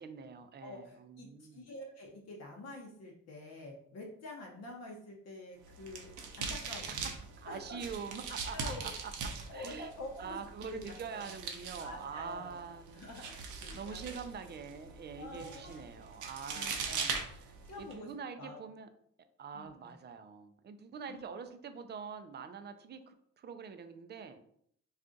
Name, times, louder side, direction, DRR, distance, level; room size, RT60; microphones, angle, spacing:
voice 1, 0.0-1.6 6.9-7.1 7.4-9.1 9.5-9.9 10.2-13.0 13.4-18.9 19.4-24.4, right 6 dB, 35° right, 8 dB, 0.4 m, -45 dB
voice 2, 0.6-6.1 6.4-7.0 7.4-7.9 8.3-8.9 9.5-11.3 11.8-12.6 12.9-13.3 13.6-14.3 15.2-15.8 16.5-17.2 17.7-18.1 18.4-18.7 19.5-19.9 21.1-21.3, left 2 dB, 60° left, 0 dB, 0.7 m, -47 dB
sound 1, 5.6-17.9, right 5 dB, 75° right, 0.6 m, -42 dB
2.4 x 2.4 x 3.8 m, 0.67 s
cardioid pair, 90°, 30 cm